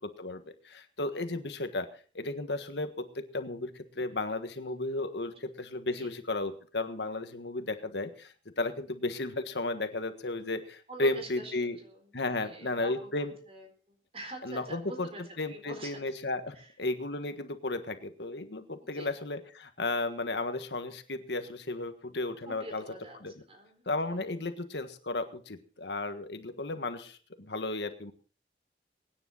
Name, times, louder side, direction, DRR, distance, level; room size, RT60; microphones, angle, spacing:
voice 1, 0.2-1.9 2.1-11.8 12.1-13.3 14.4-15.1 15.4-22.8 23.2-23.3 23.8-28.1, left 2 dB, 80° left, 8 dB, 1.5 m, -34 dB
voice 2, 10.9-16.1 16.5-16.7 18.8-19.2 22.5-23.2 23.5-24.2, right 1 dB, 35° right, 5 dB, 4.1 m, -46 dB
23.0 x 10.0 x 4.1 m, 0.41 s
head